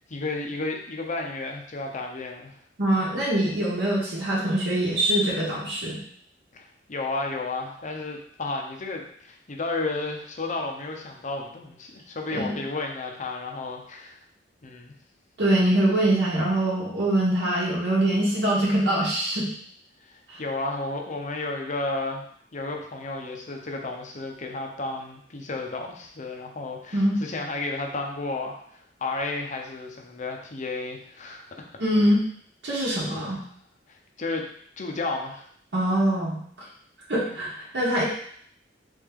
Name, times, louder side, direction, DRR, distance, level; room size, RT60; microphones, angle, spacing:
voice 1, 0.1-2.6 6.5-14.2 14.6-14.9 20.0-22.3 22.5-31.6 33.1-33.4 33.9-34.5 34.8-35.4 37.2-37.4, left 3 dB, 40° left, 2 dB, 0.6 m, -32 dB
voice 2, 2.8-6.0 12.3-12.5 15.4-19.5 20.3-20.4 26.9-27.2 31.8-32.2 32.6-33.4 35.7-36.4 37.1-38.0, right 1 dB, 65° right, -6 dB, 1.0 m, -23 dB
3.4 x 3.4 x 3.6 m, 0.62 s
head